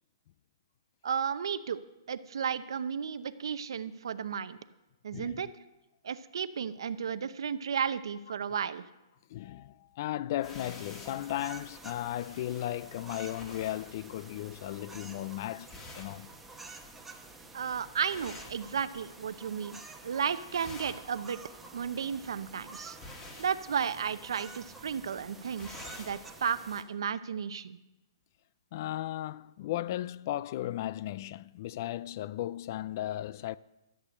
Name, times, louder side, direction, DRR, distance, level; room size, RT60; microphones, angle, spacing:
voice 1, 1.0-1.8 2.1-4.6 5.0-5.5 6.0-8.8 17.5-21.4 21.7-23.0 23.4-27.8, right 7 dB, 75° right, 0.8 m, -33 dB
voice 2, 5.1-5.4 9.3-16.3 28.7-33.6, left 13 dB, 40° left, 0.3 m, -36 dB
sound 1, 10.4-19.3 19.6-20.1 20.3-26.3, left 2 dB, 20° left, 2.0 m, -51 dB
sound 2, 10.4-26.8, right 3 dB, 5° right, 1.0 m, -50 dB
14.0 x 8.4 x 6.4 m
hypercardioid pair, 155°, 3 cm